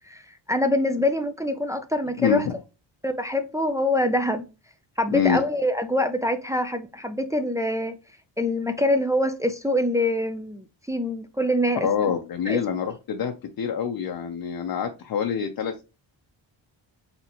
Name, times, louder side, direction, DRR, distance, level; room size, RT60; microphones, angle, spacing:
voice 1, 0.5-2.4 3.0-4.4 5.0-7.9 8.4-12.1 12.5-12.6, left 1 dB, 5° right, 0.4 m, -25 dB
voice 2, 2.2-2.5 5.1-5.4 11.8-15.8, left 7 dB, 50° left, 0.7 m, -26 dB
4.2 x 3.5 x 2.9 m
cardioid pair, 100°, 46 cm